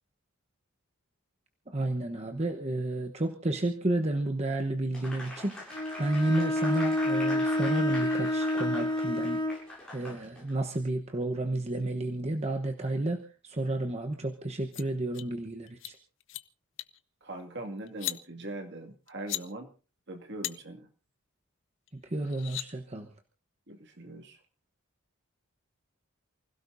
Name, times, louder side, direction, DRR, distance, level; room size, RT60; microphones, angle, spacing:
voice 1, 1.7-9.4 9.9-16.0 21.9-23.1, right 1 dB, 30° right, 3 dB, 1.1 m, -31 dB
Applause, 4.9-10.5, left 1 dB, 5° left, 7.5 m, -43 dB
Bowed string instrument, 5.7-9.7, left 1 dB, 20° left, 1.5 m, -29 dB
sound 1, 14.5-14.8 15.1-15.3 15.7-15.9 16.2-16.4 16.8-17.0 17.9-18.2 19.1-19.4 20.4-20.5 21.9-22.0 22.2-22.7, left 15 dB, 60° left, 0.7 m, -36 dB
voice 2, 17.2-19.7 20.1-20.9 23.7-24.4, right 2 dB, 55° right, 4 dB, 2.3 m, -41 dB
29.0 x 16.5 x 2.7 m, 0.36 s
head